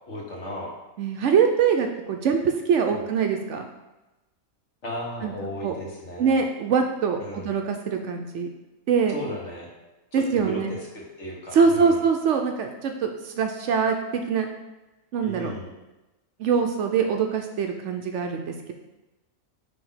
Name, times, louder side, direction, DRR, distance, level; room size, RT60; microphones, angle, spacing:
voice 1, 0.1-0.7 2.8-3.0 4.8-6.4 7.2-7.5 9.1-9.7 10.1-12.0 15.2-15.7, left 1 dB, 60° left, -2 dB, 1.5 m, -36 dB
voice 2, 1.0-3.7 5.2-5.3 5.6-5.7 6.2-8.5 8.9-9.2 10.1-10.7 11.5-14.5 15.1-15.5 16.4-18.7, right 6 dB, 65° right, 4 dB, 0.8 m, -23 dB
4.9 x 3.5 x 5.5 m, 1.0 s
omnidirectional pair, 1.4 m